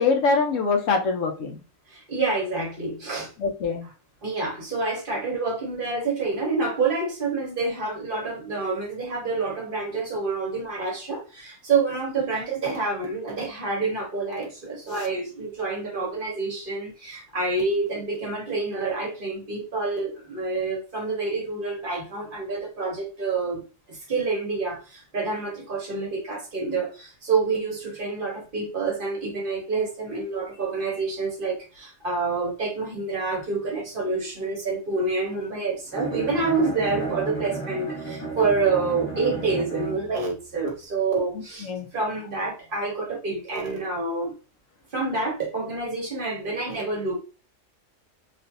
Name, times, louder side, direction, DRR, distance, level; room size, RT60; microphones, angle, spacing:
voice 1, 0.0-1.6 3.4-3.9 41.3-41.9, left 4 dB, 75° left, 0.9 m, -24 dB
voice 2, 1.9-3.3 4.2-23.6 23.9-44.3 44.9-47.2, right 3 dB, 45° right, 1.0 m, -27 dB
Bowed string instrument, 35.9-40.3, right 3 dB, 10° left, 0.7 m, -33 dB
3.3 x 2.4 x 2.6 m
omnidirectional pair, 1.4 m